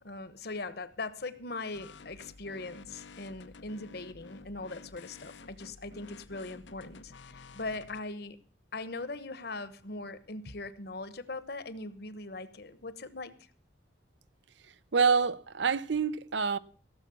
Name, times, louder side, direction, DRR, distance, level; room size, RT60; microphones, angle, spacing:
voice 1, 0.0-8.4 8.7-13.4, left 3 dB, 60° left, 1.2 m, -40 dB
sound 1, 1.7-8.0, left 4 dB, 80° left, 0.8 m, -51 dB
voice 2, 14.9-16.6, right 5 dB, 75° right, 0.7 m, -26 dB
17.0 x 7.3 x 7.0 m
head